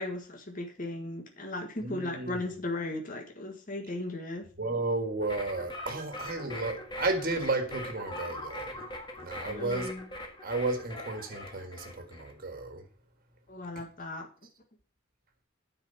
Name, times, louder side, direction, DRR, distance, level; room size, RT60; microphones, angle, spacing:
voice 1, 0.0-4.5 9.4-10.1 13.5-14.3, left 2 dB, 40° left, 1.7 m, -36 dB
voice 2, 1.8-2.4 4.6-8.8 9.2-9.9 10.4-12.8, right 2 dB, 45° right, 1.8 m, -33 dB
sound 1, 5.2-12.3, left 1 dB, 20° left, 1.6 m, -41 dB
9.1 x 5.0 x 6.9 m
head